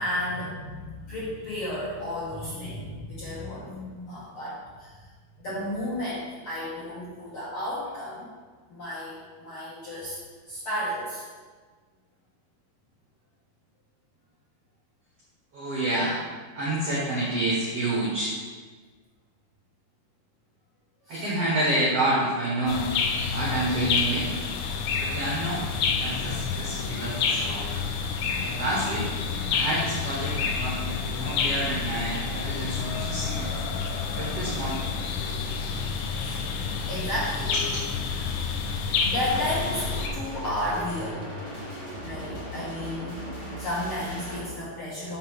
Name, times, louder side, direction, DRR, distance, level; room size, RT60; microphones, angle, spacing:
voice 1, 0.0-4.9 5.4-8.3 8.7-10.2 10.5-11.2 21.1-21.3 36.2-36.4 36.9-37.5 39.0-39.8 40.1-41.2 42.0-43.2 43.6-45.2, left 1 dB, 60° left, -10 dB, 1.4 m, -32 dB
voice 2, 15.5-16.2 16.5-18.3 21.1-22.8 23.3-24.3 25.0-25.6 26.0-27.7 28.4-29.1 29.5-33.5 34.1-35.0 37.7-37.8, right 1 dB, 80° right, -5 dB, 1.4 m, -28 dB
sound 1, 22.7-40.1, left 5 dB, 85° left, 1.9 m, -29 dB
sound 2, 39.3-44.5, equal, 25° left, 0.6 m, -37 dB
6.4 x 3.8 x 6.1 m, 1.5 s
omnidirectional pair, 4.5 m